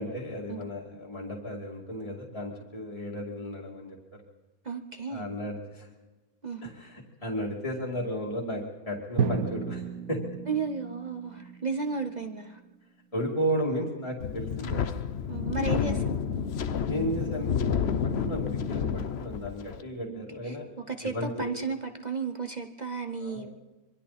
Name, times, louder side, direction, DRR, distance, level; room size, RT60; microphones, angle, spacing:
voice 1, 0.0-4.0 5.1-5.9 6.6-10.2 13.1-15.0 15.6-16.0 16.8-20.7 21.1-21.5 23.2-23.5, equal, 25° left, -4 dB, 2.7 m, -34 dB
voice 2, 4.6-5.3 6.4-6.7 10.5-12.6 15.3-16.2 20.1-20.6 20.9-23.5, right 4 dB, 35° right, 7 dB, 1.0 m, -33 dB
Drum, 9.2-13.2, right 7 dB, 75° right, 1.7 m, -34 dB
Wind, 14.2-19.8, left 7 dB, 50° left, 1.0 m, -30 dB
26.0 x 23.5 x 4.3 m, 1.2 s
omnidirectional pair, 1.5 m